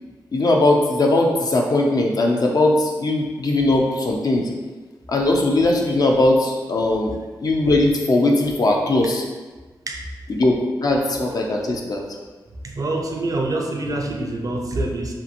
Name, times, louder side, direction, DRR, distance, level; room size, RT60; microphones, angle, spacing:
voice 1, 0.3-4.5 5.1-7.1 7.4-9.2 10.3-12.0, left 2 dB, 50° left, 0 dB, 0.4 m, -19 dB
voice 2, 12.6-15.1, right 2 dB, 45° right, 2 dB, 0.4 m, -25 dB
2.8 x 2.5 x 2.5 m, 1.3 s
cardioid pair, 55°, 8 cm